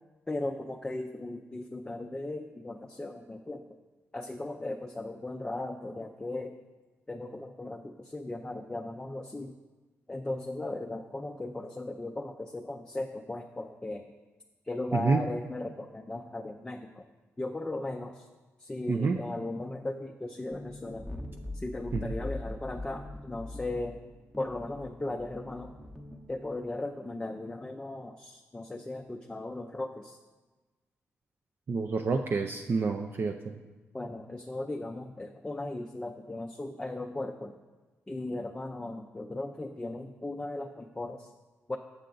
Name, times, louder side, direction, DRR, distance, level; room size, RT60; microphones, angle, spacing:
voice 1, 0.3-3.7 4.1-6.6 7.1-9.5 10.1-14.0 14.6-17.0 17.4-18.3 18.6-21.1 21.5-24.0 24.4-25.7 26.3-30.2 33.9-37.5 38.1-41.3 41.7-41.8, left 2 dB, 15° left, 3 dB, 0.4 m, -37 dB
voice 2, 18.9-19.2 21.9-22.1 31.7-33.3, right 4 dB, 45° right, 3 dB, 0.4 m, -28 dB
sound 1, 20.5-26.7, left 2 dB, ahead, 0.8 m, -42 dB
7.2 x 6.7 x 3.9 m, 1.3 s
cardioid pair, 85°, 5 cm